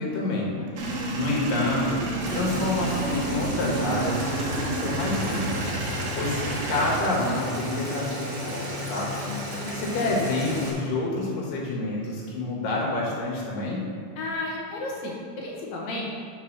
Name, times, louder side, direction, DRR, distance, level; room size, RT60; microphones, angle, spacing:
voice 1, 0.0-0.5 0.8-2.0 2.3-5.7 6.1-6.4 6.7-9.1 9.7-13.9, left 2 dB, 90° left, -4 dB, 3.1 m, -28 dB
voice 2, 0.6-1.1 9.2-9.8 14.2-16.0, left 2 dB, 65° left, -3 dB, 2.2 m, -34 dB
Male speech man speaking / Vehicle / Engine starting, 0.8-7.0, right 2 dB, 70° right, 1.5 m, -30 dB
Boiling, 2.2-10.7, equal, 50° right, 1.4 m, -34 dB
5.7 x 4.8 x 6.0 m, 2.2 s
omnidirectional pair, 3.8 m